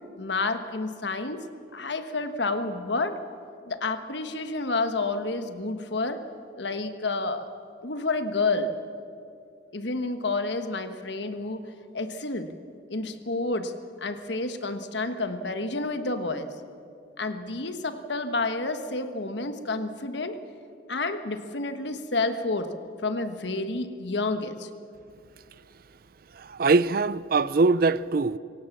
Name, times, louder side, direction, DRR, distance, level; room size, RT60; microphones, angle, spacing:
voice 1, 0.2-1.4 1.7-3.2 3.7-6.2 6.6-7.5 7.8-8.8 9.7-11.6 11.9-12.5 12.9-13.7 14.0-16.5 17.2-20.4 20.9-22.7 23.0-24.7, left 3 dB, 70° left, 1.4 m, -29 dB
voice 2, 26.4-28.4, right 3 dB, 50° right, 0.5 m, -22 dB
24.5 x 17.0 x 7.3 m
head